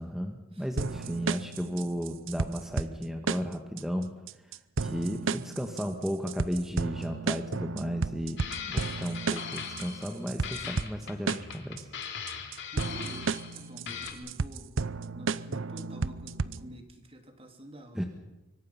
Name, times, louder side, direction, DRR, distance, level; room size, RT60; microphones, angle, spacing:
voice 1, 0.0-4.1 4.8-8.4 8.6-11.9 17.9-18.0, equal, ahead, 4 dB, 1.4 m, -34 dB
sound 1, 0.8-16.8, right 4 dB, 60° right, 0.7 m, -33 dB
sound 2, 8.4-10.2 10.4-13.6 13.9-14.1, left 6 dB, 55° left, 2.9 m, -39 dB
voice 2, 12.7-14.7 15.1-16.8 17.1-18.0, equal, 25° right, 5 dB, 2.8 m, -47 dB
25.5 x 24.5 x 5.7 m, 1.0 s
head